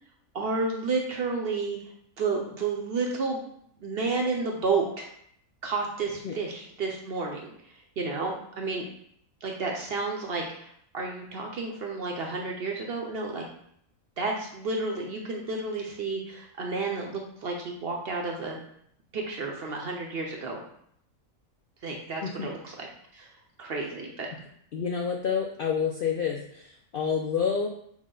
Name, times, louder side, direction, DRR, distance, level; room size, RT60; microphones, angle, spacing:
voice 1, 0.3-1.9 2.2-3.4 3.8-5.1 5.6-8.8 9.4-13.5 14.2-18.6 19.1-20.6 21.8-22.9 23.1-23.3 23.6-24.3, right 3 dB, 60° right, 0 dB, 0.7 m, -31 dB
voice 2, 22.2-22.5 24.7-27.7, left 6 dB, 70° left, 1 dB, 0.5 m, -29 dB
6.3 x 2.1 x 3.7 m, 0.68 s
omnidirectional pair, 1.4 m